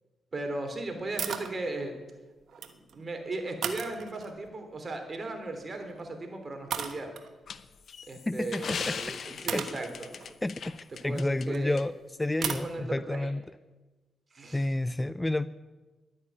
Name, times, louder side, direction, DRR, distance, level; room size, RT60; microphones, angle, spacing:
voice 1, 0.3-1.9 2.9-7.1 8.1-10.2 10.9-11.8 12.4-13.3 14.3-14.7, right 2 dB, 40° right, 5 dB, 3.1 m, -37 dB
sound 1, 1.2-1.5 2.4-3.0 3.6-4.5 5.8-6.0 6.7-7.3 8.8-8.9 9.5-11.6 12.4-12.7, right 7 dB, 75° right, 1.2 m, -36 dB
sound 2, 7.5-11.5 11.8-11.9 12.5-12.6, left 6 dB, 60° left, 0.7 m, -39 dB
voice 2, 8.3-8.9 9.5-9.6 10.4-10.5 11.0-11.9 12.2-13.4 14.5-15.5, left 1 dB, 15° left, 15 dB, 0.4 m, -29 dB
11.5 x 9.8 x 8.3 m, 1.2 s
cardioid pair, 70°, 0 cm